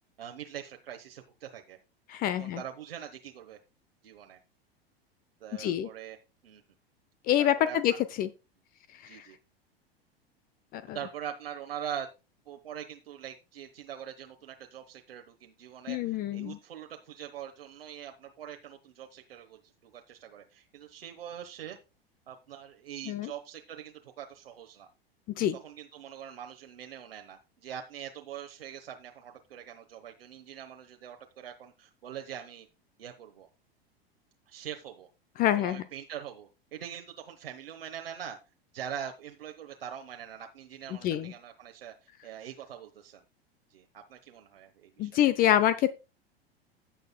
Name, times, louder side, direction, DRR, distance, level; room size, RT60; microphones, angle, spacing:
voice 1, 0.2-1.8 2.4-3.6 4.0-4.4 5.4-6.2 6.4-6.6 7.4-8.0 9.1-9.4 10.9-12.1 12.5-21.8 22.3-24.9 25.6-32.7 33.0-33.5 34.5-35.1 35.6-38.4 38.7-41.9 42.2-43.2 43.7-45.2, right 9 dB, 65° right, 4 dB, 1.2 m, -43 dB
voice 2, 2.1-2.6 5.6-5.9 7.3-7.9 8.2-8.3 9.1-9.2 10.7-11.0 15.9-16.6 23.1-23.3 25.4-25.6 35.4-35.8 41.0-41.3 45.0-45.9, left 11 dB, 30° left, 14 dB, 0.6 m, -26 dB
16.0 x 6.6 x 2.2 m, 0.28 s
figure-of-eight pair, 90°, 31 cm